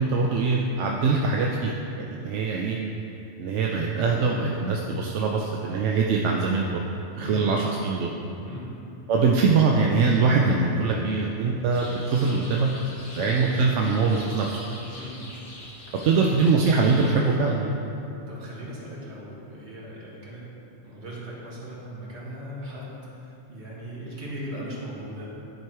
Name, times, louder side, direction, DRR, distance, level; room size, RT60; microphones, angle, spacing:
voice 1, 0.0-2.8 3.4-6.8 7.2-8.1 9.1-12.7 13.1-14.6 16.0-17.7, right 4 dB, 90° right, -1 dB, 0.9 m, -23 dB
sound 1, 11.7-17.2, left 1 dB, 45° left, 1.3 m, -43 dB
voice 2, 18.3-20.5 20.8-25.3, equal, 70° right, -6 dB, 2.0 m, -38 dB
10.5 x 4.6 x 4.6 m, 2.8 s
omnidirectional pair, 1.2 m